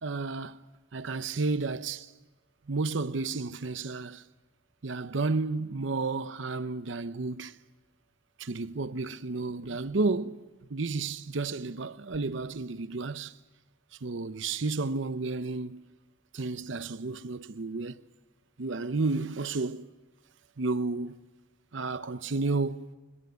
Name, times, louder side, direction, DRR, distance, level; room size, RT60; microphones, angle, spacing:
voice 1, 0.0-0.6 0.9-2.1 2.7-4.2 4.8-7.6 8.4-13.3 14.0-15.9 16.3-18.0 18.6-19.9 20.6-21.2 21.7-22.9, right 3 dB, 75° right, 0.8 m, -32 dB
23.5 x 20.5 x 9.3 m
head